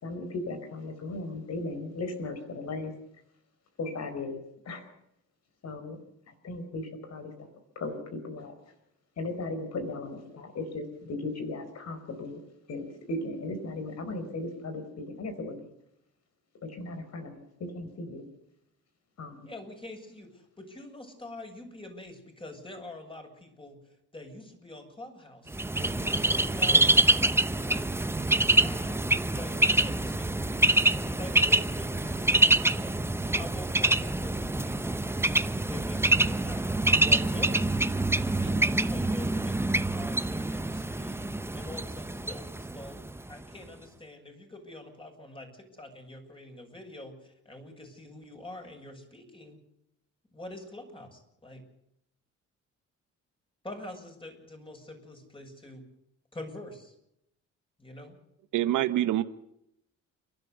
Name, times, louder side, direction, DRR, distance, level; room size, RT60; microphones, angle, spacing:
voice 1, 0.0-2.9 3.8-4.8 5.6-6.0 6.3-7.5 7.7-8.5 9.2-12.4 12.7-15.6 16.6-18.2 19.2-19.5, left 2 dB, 60° left, 4.6 m, -37 dB
voice 2, 19.4-27.9 28.6-32.9 33.3-36.6 37.0-41.3 41.5-49.6 50.3-51.6 53.6-55.8 56.3-56.9 57.8-58.2, left 1 dB, 15° left, 7.6 m, -45 dB
Bird, 25.5-43.3, right 2 dB, 10° right, 1.0 m, -26 dB
voice 3, 58.5-59.2, right 13 dB, 85° right, 1.3 m, -25 dB
30.0 x 12.5 x 8.2 m
cardioid pair, 90°, 30 cm